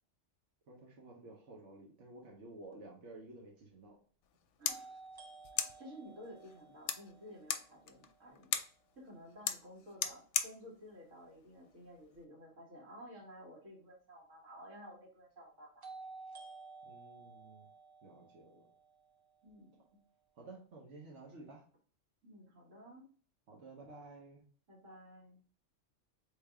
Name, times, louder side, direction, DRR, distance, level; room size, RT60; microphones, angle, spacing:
voice 1, 0.7-4.0 16.8-17.7 18.0-18.7 20.3-21.6 23.5-24.5, right 2 dB, 65° right, -2 dB, 1.2 m, -53 dB
sound 1, 2.7-2.8 4.7-8.6 15.8-19.8, right 3 dB, 30° right, 0.4 m, -54 dB
sound 2, 4.2-12.2, left 8 dB, 70° left, 0.8 m, -41 dB
voice 2, 4.6-5.0 5.5-8.5 9.0-15.8 19.4-20.0 22.2-23.1 24.7-25.4, equal, 85° right, -3 dB, 2.0 m, -54 dB
4.2 x 3.4 x 3.4 m, 0.43 s
omnidirectional pair, 1.3 m